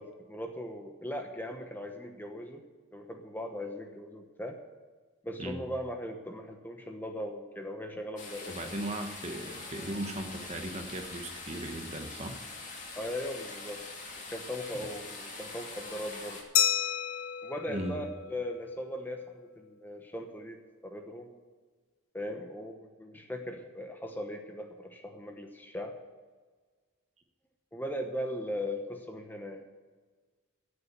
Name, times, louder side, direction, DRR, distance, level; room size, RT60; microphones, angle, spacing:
voice 1, 0.0-2.6 2.9-4.6 5.2-8.7 13.0-13.8 14.3-16.4 17.4-21.3 22.1-26.0 27.7-29.6, left 1 dB, 10° left, 4 dB, 1.0 m, -39 dB
sound 1, 8.2-16.4, left 3 dB, 35° left, 2.5 m, -43 dB
voice 2, 8.5-12.4 17.7-18.0, right 1 dB, 30° right, 5 dB, 1.2 m, -37 dB
Glass, 16.6-19.0, left 9 dB, 75° left, 1.1 m, -31 dB
13.5 x 7.0 x 8.3 m, 1.4 s
head